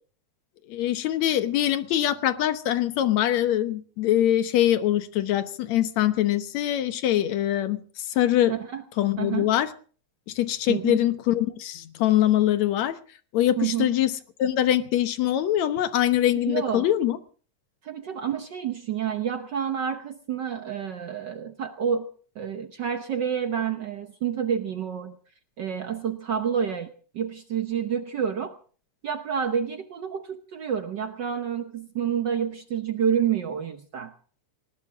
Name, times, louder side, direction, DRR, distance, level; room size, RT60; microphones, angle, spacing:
voice 1, 0.7-8.5 9.0-9.7 10.4-13.0 13.3-14.1 14.4-17.2, left 12 dB, 75° left, 11 dB, 2.3 m, -23 dB
voice 2, 8.5-8.8 9.2-9.6 10.7-11.0 13.6-13.9 16.3-16.9 17.8-22.1 22.3-25.2 25.6-26.9 27.1-28.5 29.0-34.1, right 8 dB, 70° right, 8 dB, 1.0 m, -29 dB
19.5 x 19.0 x 3.6 m, 0.42 s
omnidirectional pair, 3.3 m